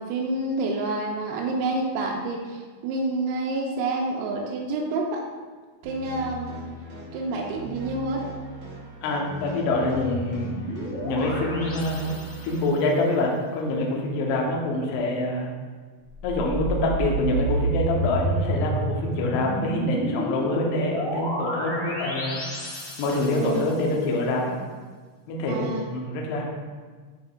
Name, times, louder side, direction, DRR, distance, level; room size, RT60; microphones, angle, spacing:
voice 1, 0.0-5.2 5.8-6.6 7.1-8.2 23.4-23.7 25.5-25.9, right 2 dB, 90° right, -1 dB, 3.3 m, -28 dB
sound 1, 5.8-12.7, right 1 dB, 65° right, 1.8 m, -39 dB
voice 2, 9.0-10.5 11.0-12.0 12.4-15.5 16.2-22.4 23.0-24.5 25.3-26.4, left 2 dB, 80° left, -1 dB, 2.4 m, -26 dB
sound 2, 9.7-12.8 16.1-23.8, right 2 dB, 55° left, 2.3 m, -30 dB
10.5 x 3.7 x 2.4 m, 1.5 s
omnidirectional pair, 5.8 m